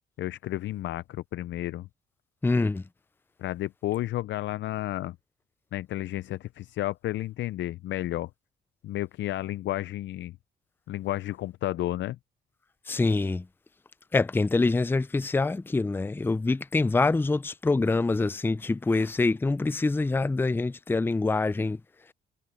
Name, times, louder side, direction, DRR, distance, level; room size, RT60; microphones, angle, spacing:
voice 1, 0.2-1.9 3.4-5.2 5.7-8.3 8.8-10.4 10.9-12.2, left 14 dB, 70° left, 0.4 m, -32 dB
voice 2, 2.4-2.8 12.9-13.4 14.1-21.8, left 3 dB, 10° left, 0.4 m, -25 dB
cardioid pair, 90°, 20 cm